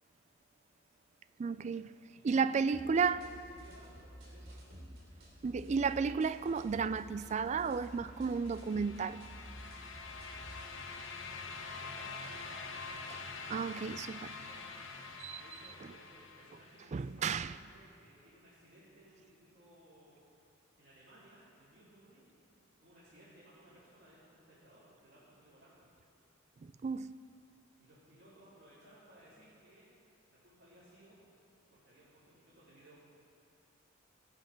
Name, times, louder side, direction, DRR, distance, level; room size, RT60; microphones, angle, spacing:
voice 1, 1.4-1.9 2.2-3.3 5.4-9.2 13.1-13.2 13.5-14.3 15.2-16.0 16.9-17.6 26.6-27.1, right 5 dB, 35° right, 0.3 m, -33 dB
voice 2, 2.1-3.1 3.4-4.8 11.6-12.7 14.5-20.2 20.8-22.3 22.8-25.9 27.8-29.9 30.3-31.2 31.7-32.1 32.4-33.0, right 1 dB, 55° right, 3.8 m, -60 dB
sound 1, 2.7-10.7, equal, 75° right, 3.2 m, -52 dB
sound 2, 8.1-17.0, left 4 dB, 70° left, 1.0 m, -46 dB
19.0 x 7.5 x 5.2 m
head